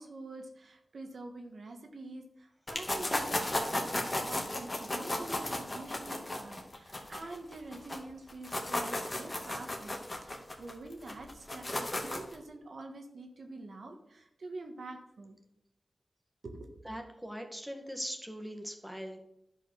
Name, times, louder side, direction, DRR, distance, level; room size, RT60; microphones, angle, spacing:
voice 1, 0.0-15.4 16.4-16.8, right 2 dB, 70° right, 4 dB, 1.6 m, -46 dB
sound 1, 2.7-8.0 8.3-12.4, left 1 dB, 30° left, 2.1 m, -35 dB
voice 2, 16.9-19.2, equal, 5° right, 4 dB, 1.7 m, -41 dB
11.0 x 5.4 x 6.4 m, 0.81 s
wide cardioid pair, 75°, 0 cm